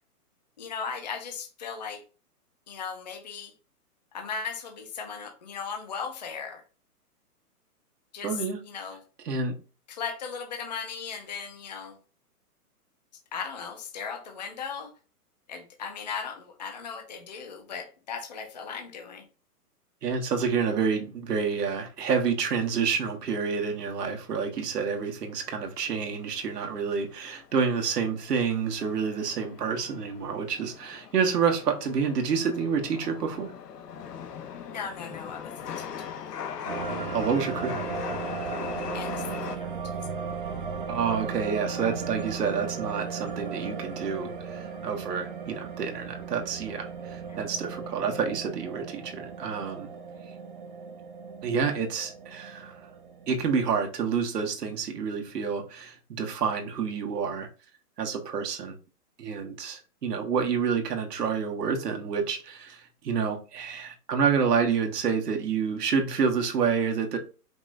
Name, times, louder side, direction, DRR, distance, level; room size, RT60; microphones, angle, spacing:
voice 1, 0.6-2.0 2.7-3.5 4.1-6.6 8.1-9.0 9.9-12.0 13.3-14.9 15.5-19.3 34.7-36.2 38.9-40.0 47.3-47.4, left 6 dB, 30° left, 0.5 m, -37 dB
voice 2, 8.2-8.6 9.2-9.5 20.0-33.5 37.1-37.7 40.9-49.9 51.4-52.8 53.3-57.5 58.0-58.7 59.2-67.2, right 6 dB, 85° right, 1.5 m, -28 dB
Chatter / Subway metro underground, 25.3-39.6, left 7 dB, 80° left, 1.0 m, -40 dB
sound 1, 36.7-53.3, right 5 dB, 35° right, 0.5 m, -36 dB
5.1 x 2.5 x 3.2 m
hypercardioid pair, 165°, 47 cm